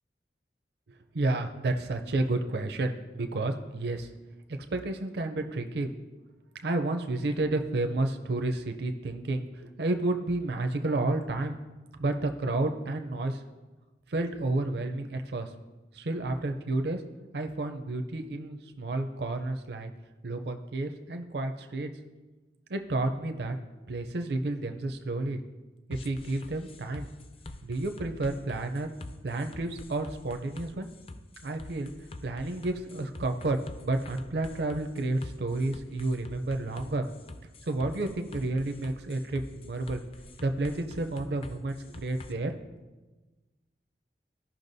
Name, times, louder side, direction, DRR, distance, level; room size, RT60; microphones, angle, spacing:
voice 1, 0.9-4.1 4.7-5.9 6.6-11.6 12.0-13.4 14.1-15.5 15.9-17.0 17.3-19.9 20.2-21.9 22.7-23.6 23.9-25.4 25.9-27.1 27.6-28.9 29.2-30.9 31.4-31.9 32.2-37.1 37.6-40.0 40.4-42.5, right 2 dB, 70° right, 6 dB, 0.5 m, -31 dB
sound 1, 25.9-42.3, left 2 dB, 30° left, 0.4 m, -46 dB
15.0 x 5.7 x 2.7 m, 1.2 s
head